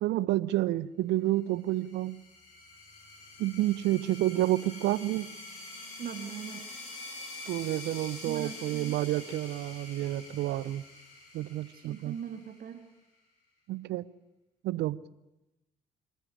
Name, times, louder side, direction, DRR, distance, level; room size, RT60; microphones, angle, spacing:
voice 1, 0.0-2.2 3.4-5.3 7.5-10.8 11.3-12.1 13.7-14.0 14.6-15.0, right 15 dB, 65° right, 0.8 m, -29 dB
sound 1, 1.6-12.8, left 2 dB, 80° left, 5.9 m, -46 dB
voice 2, 6.0-6.7 8.2-9.0 11.7-12.8, right 8 dB, 50° right, 2.0 m, -40 dB
26.0 x 14.0 x 9.1 m
hypercardioid pair, 50°, 19 cm